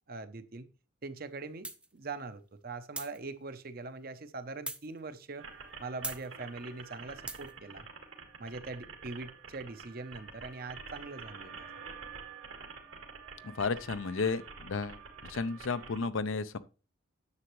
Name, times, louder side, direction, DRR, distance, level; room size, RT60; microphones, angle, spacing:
voice 1, 0.1-0.7 1.0-5.4 5.8-7.9 8.4-11.7, right 3 dB, 45° right, 0.7 m, -42 dB
sound 1, 1.6-1.9 3.0-3.2 4.7-4.9 6.0-6.3 7.3-7.5, right 2 dB, 5° right, 0.4 m, -39 dB
sound 2, 5.4-16.0, right 5 dB, 75° right, 1.8 m, -48 dB
voice 2, 13.4-15.0 15.3-16.6, left 4 dB, 75° left, 0.6 m, -33 dB
9.7 x 6.9 x 3.1 m
head